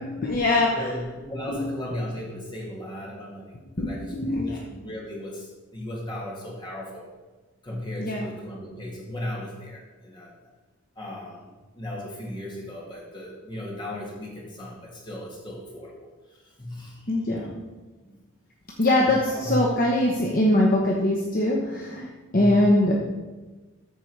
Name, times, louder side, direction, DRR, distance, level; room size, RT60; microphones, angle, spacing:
voice 1, 0.0-0.7 1.5-1.6 3.8-4.7 8.0-8.3 17.1-17.4 18.8-22.1 22.3-23.0, left 1 dB, 40° left, -1 dB, 0.9 m, -22 dB
voice 2, 0.7-7.1 7.6-10.3 11.0-17.2 18.0-18.2 19.1-19.6 22.3-22.8, left 1 dB, 20° left, -3 dB, 2.1 m, -36 dB
13.5 x 4.5 x 4.6 m, 1.2 s
head